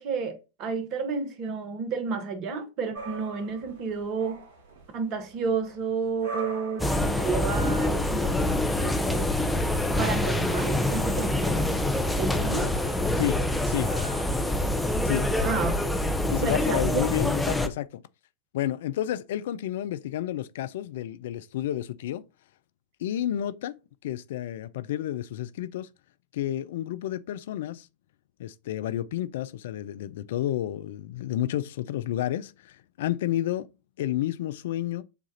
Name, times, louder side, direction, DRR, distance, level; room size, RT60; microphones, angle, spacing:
voice 1, 0.0-4.4 4.9-9.3 10.0-11.9 12.2-12.7 15.4-17.0, right 5 dB, 40° right, 1.0 m, -31 dB
sound 1, 2.9-14.5, right 4 dB, 65° right, 1.5 m, -44 dB
sound 2, 6.8-17.7, left 1 dB, 5° left, 0.5 m, -26 dB
voice 2, 16.3-18.0 18.5-22.2 23.0-23.8 24.0-25.9 26.3-27.9 28.4-33.7 34.0-35.0, left 12 dB, 60° left, 0.3 m, -30 dB
6.8 x 2.4 x 2.7 m
figure-of-eight pair, 90°, 0 cm